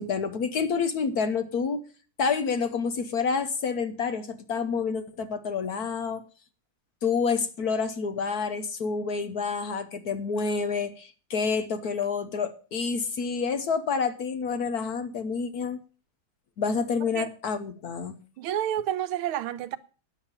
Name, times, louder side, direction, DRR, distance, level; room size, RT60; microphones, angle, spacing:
voice 1, 0.0-1.8 2.2-6.2 7.0-15.8 16.6-18.2, left 5 dB, 60° left, 1.1 m, -28 dB
voice 2, 18.4-19.8, right 11 dB, 90° right, 1.6 m, -29 dB
9.9 x 7.1 x 7.1 m
omnidirectional pair, 2.3 m